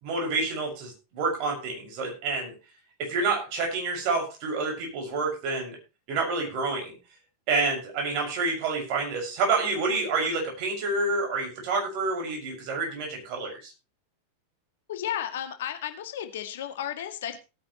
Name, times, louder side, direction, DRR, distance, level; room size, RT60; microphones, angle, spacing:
voice 1, 0.0-2.5 3.0-5.8 6.1-6.9 7.5-13.7, right 3 dB, 45° right, 1 dB, 6.5 m, -28 dB
voice 2, 14.9-17.4, left 10 dB, 55° left, 7 dB, 1.9 m, -33 dB
18.5 x 9.7 x 3.2 m, 0.29 s
figure-of-eight pair, 90°, 0 cm